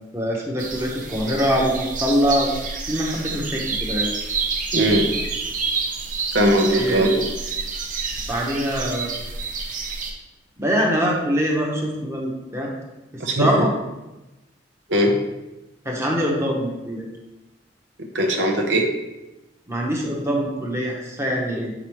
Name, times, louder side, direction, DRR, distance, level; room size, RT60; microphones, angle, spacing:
voice 1, 0.1-2.5 2.9-4.1 6.7-7.0 8.3-9.1 10.6-12.7 13.4-13.7 15.8-17.0 19.7-21.7, equal, 15° right, -2 dB, 1.0 m, -23 dB
sound 1, 0.6-10.1, right 4 dB, 45° right, 0.7 m, -28 dB
voice 2, 4.7-5.1 6.3-7.2 13.2-13.5 14.9-15.1 18.1-18.9, right 1 dB, 80° right, 2 dB, 0.8 m, -19 dB
6.5 x 4.9 x 3.1 m, 1.0 s
head